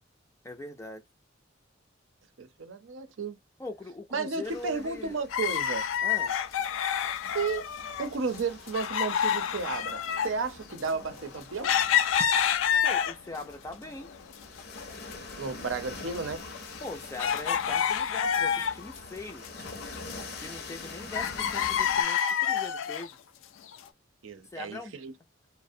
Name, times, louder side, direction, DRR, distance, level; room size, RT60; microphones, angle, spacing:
voice 1, 0.4-1.0 3.6-5.1 6.0-6.3 12.8-14.1 16.8-19.5 20.4-23.2 24.5-24.9, left 2 dB, 15° left, 0.4 m, -41 dB
voice 2, 2.4-3.4 4.1-5.9 7.0-7.7 8.0-11.7 15.4-16.4 24.2-25.1, right 4 dB, 80° right, 0.6 m, -33 dB
sound 1, 4.4-22.0, left 3 dB, 55° left, 0.6 m, -46 dB
sound 2, 5.3-8.1 8.3-13.4 13.9-14.8 15.0-15.1 15.8-19.0 19.3-20.8 21.1-23.1 23.7-23.8, left 8 dB, 90° left, 0.3 m, -28 dB
2.4 x 2.0 x 2.6 m
head